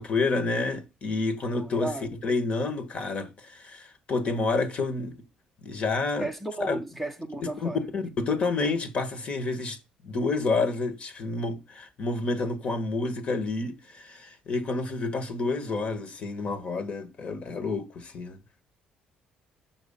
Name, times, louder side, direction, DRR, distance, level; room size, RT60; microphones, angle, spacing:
voice 1, 0.0-1.9 2.2-5.2 5.6-6.3 6.7-6.8 7.4-9.8 10.0-18.4, left 3 dB, 45° left, 1.4 m, -29 dB
voice 2, 1.5-2.2 6.2-7.8, right 2 dB, 5° left, 0.7 m, -34 dB
6.0 x 4.7 x 5.5 m
cardioid pair, 125°, 3 cm